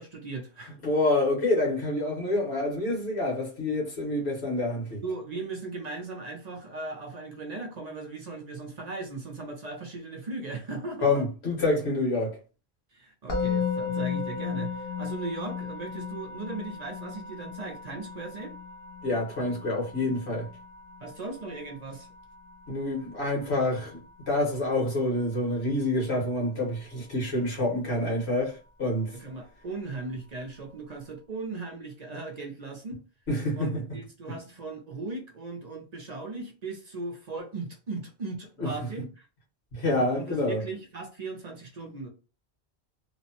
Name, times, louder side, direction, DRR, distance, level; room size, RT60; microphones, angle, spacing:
voice 1, 0.0-0.8 5.0-11.3 12.9-18.6 21.0-22.1 29.1-33.0 33.6-39.3 40.1-42.1, right 3 dB, 50° right, 0.6 m, -38 dB
voice 2, 0.8-5.0 11.0-12.4 19.0-20.5 22.7-24.0 24.3-29.1 33.3-33.8 34.3-34.4 38.6-38.7 39.7-40.6, left 2 dB, 90° left, 1.5 m, -27 dB
Musical instrument, 13.3-24.4, left 6 dB, 35° left, 0.8 m, -35 dB
3.0 x 2.1 x 2.8 m
omnidirectional pair, 1.1 m